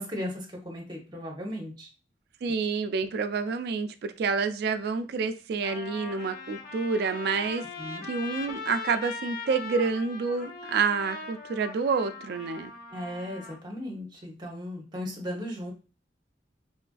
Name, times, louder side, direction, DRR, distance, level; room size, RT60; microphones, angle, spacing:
voice 1, 0.0-1.9 7.8-8.0 12.9-15.7, left 1 dB, 25° right, 0 dB, 0.8 m, -36 dB
voice 2, 2.4-7.6 8.1-12.7, right 5 dB, 60° right, 10 dB, 0.3 m, -28 dB
Trumpet, 4.9-5.0 5.6-13.6, left 3 dB, 55° left, 0.5 m, -40 dB
3.1 x 2.4 x 2.3 m, 0.34 s
head